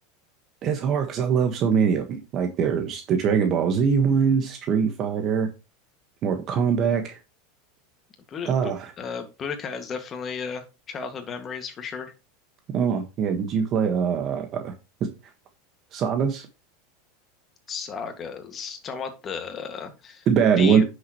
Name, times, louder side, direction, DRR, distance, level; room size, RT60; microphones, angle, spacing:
voice 1, 0.6-5.5 6.2-7.2 8.4-8.9 12.7-14.7 15.9-16.5 20.3-20.8, right 6 dB, 40° right, 5 dB, 1.4 m, -22 dB
voice 2, 8.3-12.1 17.7-20.3 20.6-20.9, left 5 dB, 30° left, 6 dB, 2.0 m, -34 dB
9.6 x 6.7 x 3.1 m, 0.28 s
supercardioid pair, 135°, 0 cm